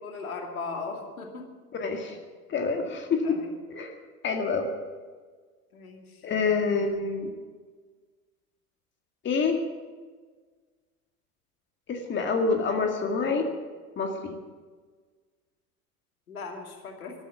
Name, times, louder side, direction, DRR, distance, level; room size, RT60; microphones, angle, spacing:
voice 1, 0.0-1.5 3.2-3.5 5.7-6.2 16.3-17.1, left 4 dB, 70° left, 3 dB, 2.7 m, -38 dB
voice 2, 1.8-2.2 2.5-3.4 3.7-3.9 4.2-4.7 6.2-7.3 9.2-9.6 11.9-13.5 14.0-14.4, left 4 dB, 25° left, 4 dB, 2.0 m, -27 dB
14.0 x 12.5 x 8.2 m, 1.5 s
figure-of-eight pair, 80°, 45 cm